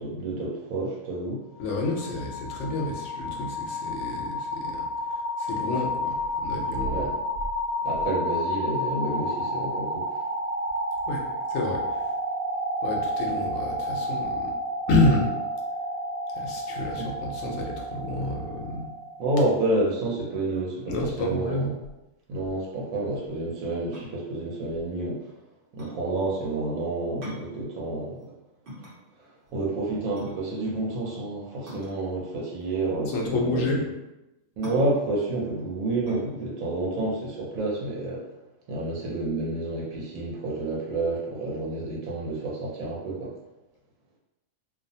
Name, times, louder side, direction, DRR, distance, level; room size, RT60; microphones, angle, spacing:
voice 1, 0.0-1.4 6.8-7.1 7.8-10.1 16.8-17.1 19.2-21.7 22.3-25.2 25.7-28.3 29.2-33.8 34.6-38.2 38.7-43.3, right 2 dB, 85° right, -4 dB, 1.1 m, -29 dB
voice 2, 1.6-4.9 5.1-7.1 11.1-11.2 11.5-12.1 12.8-14.5 14.9-15.3 16.3-18.9 20.8-21.7 33.1-33.8, left 2 dB, 75° left, -1 dB, 1.0 m, -29 dB
sound 1, 1.6-19.5, equal, 40° left, 0.3 m, -31 dB
sound 2, 23.9-38.1, equal, 50° right, 0.9 m, -44 dB
2.5 x 2.0 x 2.6 m, 0.95 s
omnidirectional pair, 1.4 m